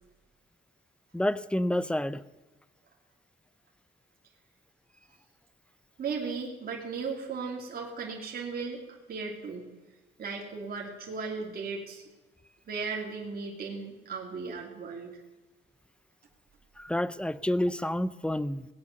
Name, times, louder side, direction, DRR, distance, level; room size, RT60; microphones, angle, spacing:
voice 1, 1.1-2.2 16.8-18.7, left 1 dB, 5° left, 16 dB, 0.6 m, -29 dB
voice 2, 6.0-9.7 10.2-12.0 12.7-15.2, right 5 dB, 50° right, -1 dB, 2.8 m, -36 dB
18.5 x 8.7 x 6.6 m, 1.1 s
cardioid pair, 90°, 20 cm